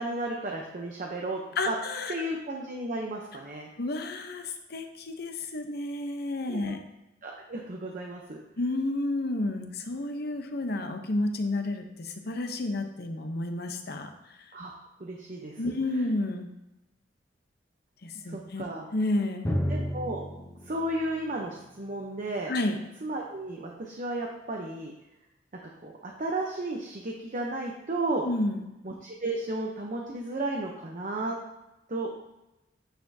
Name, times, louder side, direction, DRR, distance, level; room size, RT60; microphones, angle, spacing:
voice 1, 0.0-1.7 2.1-3.7 6.5-6.7 7.2-8.4 14.5-14.7 15.0-15.6 18.3-18.9 19.7-20.2 20.7-22.5 23.0-24.9 25.6-28.2 28.8-31.3 31.9-32.1, right 2 dB, 45° right, 0 dB, 0.8 m, -33 dB
voice 2, 1.6-2.1 3.8-6.8 8.6-14.1 15.6-16.5 18.0-18.6 18.9-19.5 22.5-22.8 28.2-28.7, left 2 dB, 55° left, 6 dB, 0.8 m, -31 dB
Drum, 19.4-23.0, equal, 15° left, 0.8 m, -34 dB
9.1 x 6.8 x 2.8 m, 0.95 s
head